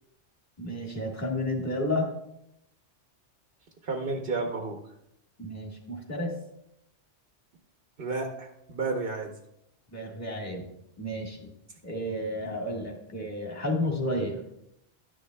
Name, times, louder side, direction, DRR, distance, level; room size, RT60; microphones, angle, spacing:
voice 1, 0.6-2.1 5.4-6.3 9.9-10.7 11.0-11.5 11.8-14.4, left 1 dB, 15° left, -2 dB, 1.5 m, -31 dB
voice 2, 3.8-4.8 8.0-9.3, right 3 dB, 55° right, 3 dB, 1.0 m, -31 dB
12.0 x 10.0 x 2.2 m, 0.81 s
omnidirectional pair, 1.2 m